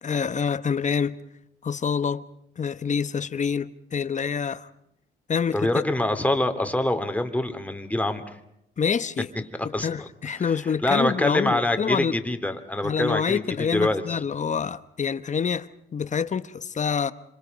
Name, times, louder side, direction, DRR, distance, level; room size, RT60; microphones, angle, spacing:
voice 1, 0.0-1.2 1.6-2.2 2.6-4.7 5.3-5.8 8.8-9.3 9.8-12.1 12.8-17.1, left 6 dB, 35° left, 1.0 m, -26 dB
voice 2, 5.5-8.4 9.7-10.1 10.8-14.2, left 1 dB, 5° left, 2.5 m, -25 dB
27.0 x 26.0 x 5.3 m
cardioid pair, 90°, 20 cm